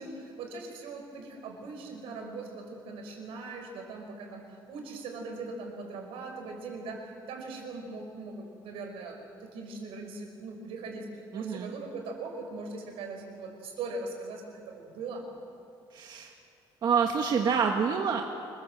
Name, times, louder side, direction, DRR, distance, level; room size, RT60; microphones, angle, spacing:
voice 1, 0.0-15.2, right 3 dB, 85° right, 2 dB, 5.5 m, -40 dB
voice 2, 11.3-11.7 15.9-16.3 16.8-18.2, right 6 dB, 50° right, 2 dB, 1.7 m, -27 dB
26.0 x 21.0 x 8.0 m, 2.5 s
cardioid pair, 140°, 9 cm